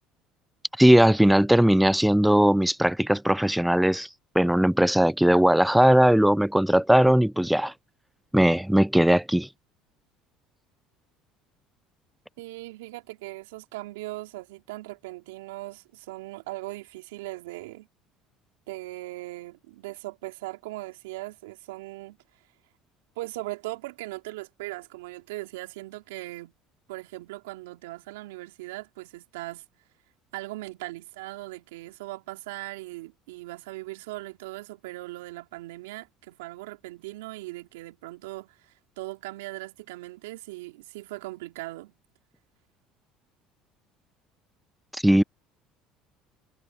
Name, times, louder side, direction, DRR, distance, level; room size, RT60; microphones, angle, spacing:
voice 1, 0.8-4.1 4.4-7.7 8.3-9.5 44.9-45.2, equal, 5° right, 0.3 m, -19 dB
voice 2, 12.4-17.9 18.7-22.2 23.2-26.5 26.9-29.6 30.3-41.9, right 20 dB, 80° right, 3.6 m, -39 dB
hypercardioid pair, 75°, 0 cm